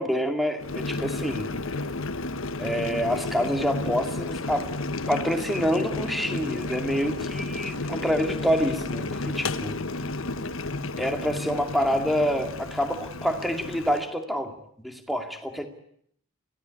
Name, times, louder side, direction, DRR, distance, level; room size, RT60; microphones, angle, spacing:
voice 1, 0.0-1.5 2.6-4.7 5.1-9.8 11.0-14.5 14.8-15.7, equal, ahead, 5 dB, 2.2 m, -27 dB
Boiling, 0.6-14.1, left 2 dB, 75° left, 1.2 m, -32 dB
24.5 x 16.5 x 9.7 m, 0.68 s
head